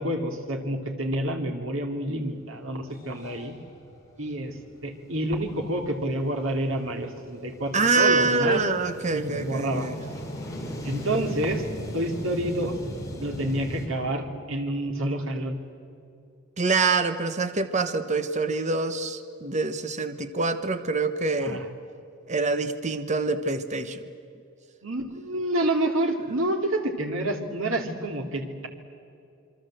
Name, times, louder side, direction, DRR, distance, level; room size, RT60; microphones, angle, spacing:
voice 1, 0.0-3.5 4.2-4.5 4.8-8.6 9.1-9.9 10.8-11.6 11.9-12.8 13.2-15.6 21.4-21.7 24.8-28.7, right 1 dB, 75° right, 4 dB, 3.0 m, -28 dB
sound 1, 2.3-2.4 2.8-13.9, equal, 15° left, 4.7 m, -39 dB
voice 2, 7.7-10.0 16.6-21.6 22.3-24.0, right 3 dB, 35° right, 10 dB, 1.1 m, -25 dB
27.5 x 23.5 x 7.8 m, 2.5 s
head